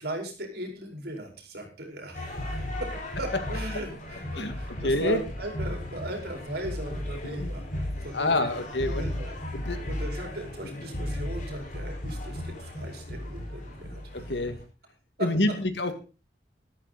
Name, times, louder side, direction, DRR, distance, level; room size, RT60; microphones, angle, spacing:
voice 1, 0.0-14.2 15.2-15.3, right 1 dB, 60° right, 3 dB, 4.9 m, -38 dB
sound 1, 2.1-14.6, left 1 dB, 45° left, 5.1 m, -35 dB
voice 2, 4.8-5.2 7.4-7.5 8.1-9.1 9.5-9.8 10.6-10.8 14.1-14.6 15.2-15.9, left 2 dB, 75° left, 9 dB, 2.1 m, -27 dB
14.0 x 12.5 x 4.2 m, 0.33 s
head